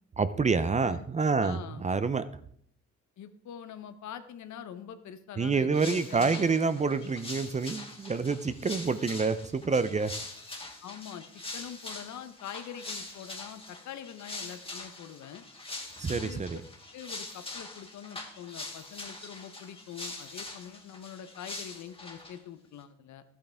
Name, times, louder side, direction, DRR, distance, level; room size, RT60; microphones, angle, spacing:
voice 1, 0.2-2.2 5.4-10.1 16.0-16.6, right 4 dB, 25° right, 13 dB, 0.5 m, -27 dB
voice 2, 1.4-1.8 3.2-6.6 10.8-11.2 11.5-15.4 16.0-16.4 16.9-23.2, left 9 dB, 70° left, 11 dB, 0.9 m, -44 dB
sound 1, 5.7-22.4, left 2 dB, 20° left, 1.8 m, -43 dB
13.0 x 8.7 x 3.4 m, 0.64 s
cardioid pair, 90°, 30 cm